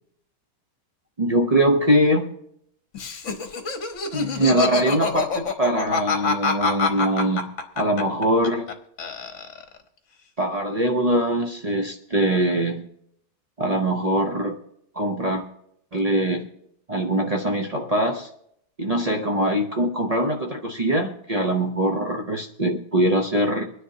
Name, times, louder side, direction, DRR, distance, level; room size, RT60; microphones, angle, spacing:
voice 1, 1.2-2.3 4.1-8.7 10.4-12.8 13.6-14.6 14.9-15.4 15.9-16.5 16.9-18.3 18.8-23.7, right 1 dB, 60° right, 3 dB, 0.4 m, -22 dB
Laughter, 2.9-8.7 9.0-9.8, left 4 dB, 50° left, 1.2 m, -26 dB
25.0 x 10.0 x 2.8 m, 0.74 s
omnidirectional pair, 1.9 m